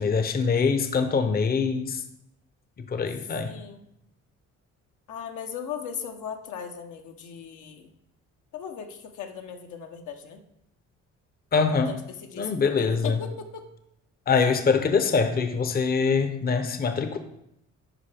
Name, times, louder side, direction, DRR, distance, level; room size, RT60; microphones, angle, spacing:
voice 1, 0.0-2.0 2.8-3.5 11.5-12.0 12.4-13.2 14.3-17.2, left 5 dB, 30° left, 8 dB, 0.7 m, -24 dB
voice 2, 3.4-3.9 5.1-7.9 8.5-10.4 11.5-13.6, left 7 dB, 80° left, 4 dB, 1.0 m, -38 dB
11.0 x 4.6 x 3.4 m, 0.81 s
cardioid pair, 90°, 30 cm